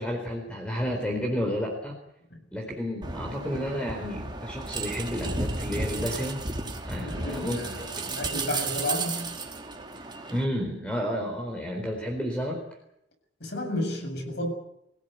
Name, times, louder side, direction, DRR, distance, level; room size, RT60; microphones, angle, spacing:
voice 1, 0.0-1.9 2.5-6.4 6.9-8.1 10.3-12.6, equal, 5° left, 4.3 m, -31 dB
sound 1, 3.0-10.4, right 3 dB, 25° right, 3.0 m, -33 dB
voice 2, 6.9-9.4 13.4-14.5, left 1 dB, 65° left, 8.0 m, -32 dB
25.0 x 17.0 x 9.5 m
head